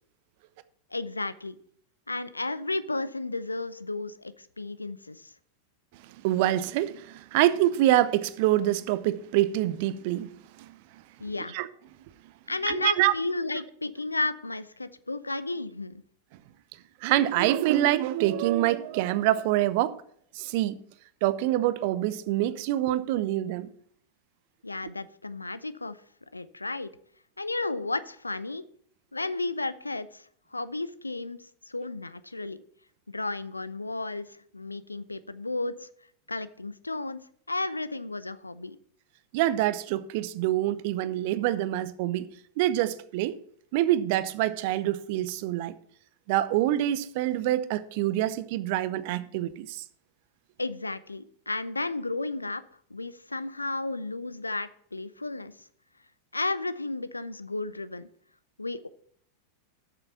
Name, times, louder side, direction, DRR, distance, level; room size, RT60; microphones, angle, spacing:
voice 1, 0.9-1.5 2.1-5.3 11.2-11.5 12.5-16.0 24.6-26.0 26.3-26.9 27.4-28.6 29.1-30.2 30.5-32.6 33.1-34.3 34.5-35.9 36.3-37.2 37.5-38.8 50.6-52.6 52.9-55.5 56.3-58.1 58.6-58.9, left 2 dB, 80° left, 0.5 m, -33 dB
voice 2, 6.2-10.3 10.6-10.7 11.5-11.7 12.7-13.1 17.0-20.0 20.3-20.8 21.2-23.7 39.3-42.3 42.6-43.4 43.7-45.7 46.3-49.8, right 14 dB, 50° right, 0.6 m, -25 dB
8.2 x 6.9 x 5.6 m
figure-of-eight pair, 90°, 0 cm